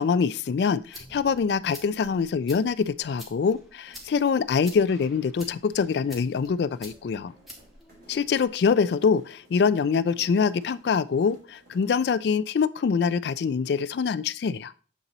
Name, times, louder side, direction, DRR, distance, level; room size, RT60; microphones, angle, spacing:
voice 1, 0.0-7.3 8.1-14.7, left 5 dB, 60° left, 0.3 m, -24 dB
sound 1, 0.7-8.7, left 1 dB, ahead, 1.2 m, -49 dB
sound 2, 3.7-12.4, right 2 dB, 55° right, 3.3 m, -57 dB
7.3 x 3.9 x 4.0 m
head